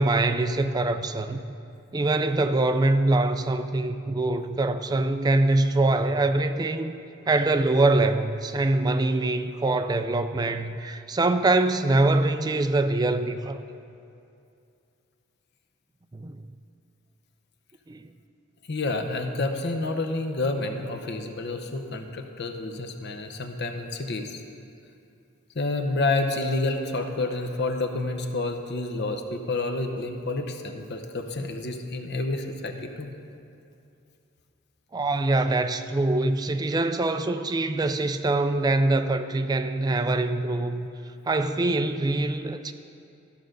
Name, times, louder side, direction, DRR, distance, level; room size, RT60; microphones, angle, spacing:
voice 1, 0.0-1.4 1.9-6.9 7.3-13.6 16.1-16.4 17.9-18.1 34.9-40.9 41.3-42.7, right 2 dB, 20° right, 9 dB, 0.3 m, -24 dB
voice 2, 18.7-24.4 25.5-33.1, left 2 dB, 55° left, 6 dB, 0.8 m, -29 dB
13.0 x 5.2 x 6.4 m, 2.6 s
head